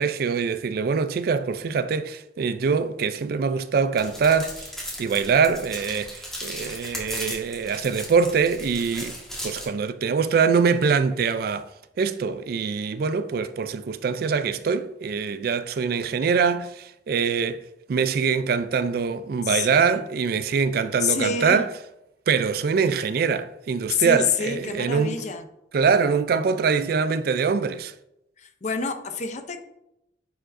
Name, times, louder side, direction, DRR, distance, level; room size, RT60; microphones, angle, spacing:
voice 1, 0.0-4.7 5.0-9.2 9.4-11.7 12.0-17.6 17.9-21.7 22.3-25.2 25.7-27.9, right 5 dB, 55° right, 0.3 m, -23 dB
sound 1, 4.0-9.6, equal, 5° left, 1.5 m, -37 dB
voice 2, 19.4-20.0 21.0-21.6 23.9-25.4 28.4-29.6, left 5 dB, 40° left, 0.6 m, -27 dB
9.9 x 4.9 x 2.6 m
head